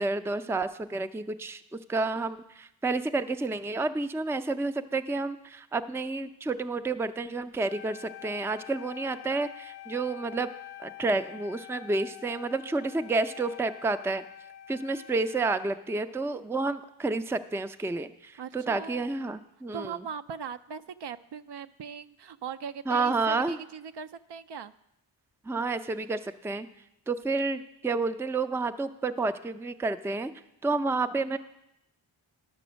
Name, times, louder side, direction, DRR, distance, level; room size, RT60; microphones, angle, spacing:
voice 1, 0.0-10.5 10.8-14.2 14.7-20.0 22.9-23.6 25.4-26.7 27.1-30.3 30.6-31.4, right 3 dB, 5° right, 10 dB, 0.4 m, -30 dB
Wind instrument woodwind instrument, 7.6-15.9, left 12 dB, 55° left, 0.6 m, -47 dB
voice 2, 18.4-19.1 19.7-24.7, right 6 dB, 60° right, 10 dB, 0.5 m, -39 dB
11.0 x 6.8 x 6.2 m, 0.82 s
cardioid pair, 60°, 48 cm